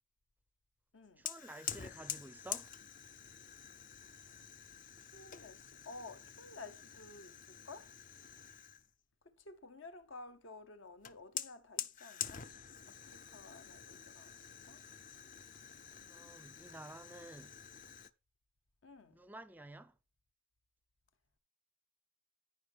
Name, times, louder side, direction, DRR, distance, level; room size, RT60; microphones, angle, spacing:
voice 1, 1.2-2.7 16.0-17.6 19.1-20.0, right 2 dB, 10° right, 0.4 m, -52 dB
Fire, 1.3-8.9 11.0-18.1, left 9 dB, 40° left, 0.5 m, -47 dB
voice 2, 5.0-7.9 9.2-12.5 12.9-14.8 18.8-19.2, left 3 dB, 65° left, 0.9 m, -53 dB
13.5 x 5.2 x 3.4 m
head